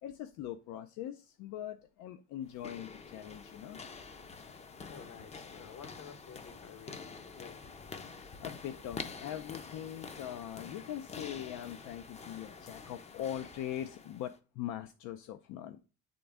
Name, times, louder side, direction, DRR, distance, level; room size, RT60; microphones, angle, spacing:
voice 1, 0.0-3.8 8.4-15.8, left 11 dB, 80° left, 0.5 m, -41 dB
sound 1, 2.4-14.4, left 5 dB, 20° left, 0.5 m, -47 dB
voice 2, 4.9-7.6, left 7 dB, 60° left, 1.1 m, -51 dB
7.8 x 3.8 x 3.4 m
cardioid pair, 135°, 30 cm